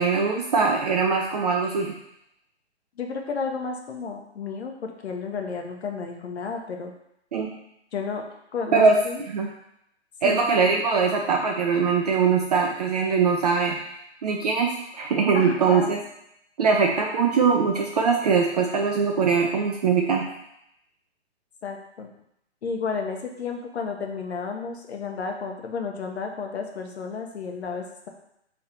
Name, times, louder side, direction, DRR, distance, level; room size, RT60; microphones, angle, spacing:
voice 1, 0.0-1.9 7.3-7.5 8.7-9.0 9.3-9.5 10.2-13.7 14.2-16.0 16.6-20.2, right 5 dB, 35° right, 1 dB, 0.4 m, -22 dB
voice 2, 3.0-6.9 7.9-8.2 8.5-9.2 10.2-10.4 15.3-15.9 21.6-22.1 22.6-28.1, left 5 dB, 65° left, 3 dB, 0.9 m, -32 dB
3.7 x 3.2 x 4.3 m, 0.79 s
hypercardioid pair, 135°, 35 cm